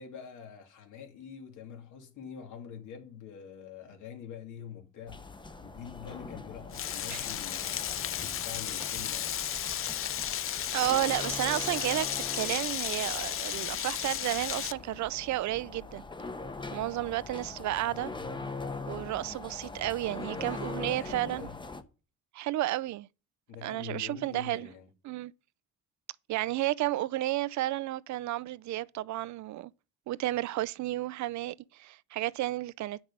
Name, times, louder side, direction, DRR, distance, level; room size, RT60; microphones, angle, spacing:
voice 1, 0.0-9.3 17.0-17.4 20.2-21.5 23.5-24.9, left 7 dB, 80° left, 2.4 m, -45 dB
sound 1, 5.1-21.8, left 3 dB, 15° left, 0.9 m, -42 dB
Frying (food), 6.7-14.7, left 10 dB, 45° left, 0.5 m, -34 dB
voice 2, 10.7-16.0 16.7-18.1 18.9-21.5 22.3-23.1 23.6-24.7 25.0-25.3 26.3-29.7 30.1-33.0, right 15 dB, 70° right, 0.5 m, -32 dB
8.9 x 6.1 x 5.3 m
cardioid pair, 90°, 30 cm